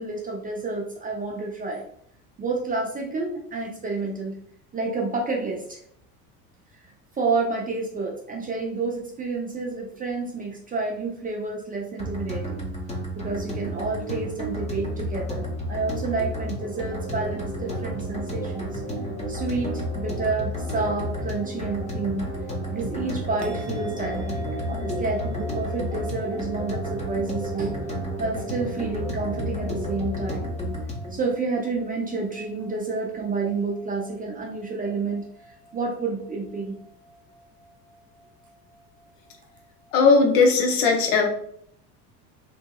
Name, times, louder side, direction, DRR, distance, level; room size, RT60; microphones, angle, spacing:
voice 1, 0.0-1.9 2.4-4.4 4.7-5.8 7.1-12.7 13.2-18.8 19.3-22.3 22.7-24.4 24.7-27.8 28.2-30.5 31.1-35.3 35.7-36.7, right 3 dB, 20° right, -1 dB, 0.4 m, -29 dB
sound 1, 12.0-31.2, equal, 15° left, 0.7 m, -32 dB
sound 2, 16.6-30.5, right 1 dB, 35° left, 1.3 m, -38 dB
sound 3, 23.4-39.9, right 1 dB, 85° right, 0.6 m, -44 dB
voice 2, 39.9-41.3, left 4 dB, 65° left, 2 dB, 0.8 m, -18 dB
2.7 x 2.6 x 2.2 m, 0.67 s
hypercardioid pair, 80°, 47 cm